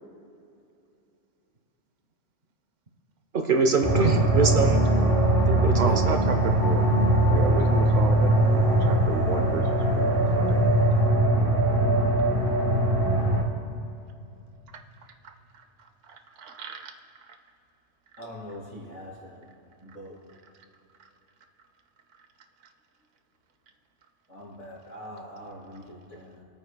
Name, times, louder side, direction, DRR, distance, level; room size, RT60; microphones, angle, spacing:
voice 1, 3.3-4.8 5.5-6.2, right 4 dB, 50° right, 4 dB, 0.9 m, -24 dB
sound 1, 3.8-13.4, right 1 dB, 30° right, 1.1 m, -21 dB
voice 2, 5.8-6.9 7.3-10.6 15.2-15.3 16.1-16.9, right 6 dB, 85° right, 7 dB, 1.1 m, -33 dB
voice 3, 18.2-19.5 19.8-20.2 24.3-26.4, equal, 80° left, -5 dB, 3.0 m, -43 dB
24.5 x 8.8 x 2.2 m, 2.8 s
omnidirectional pair, 1.2 m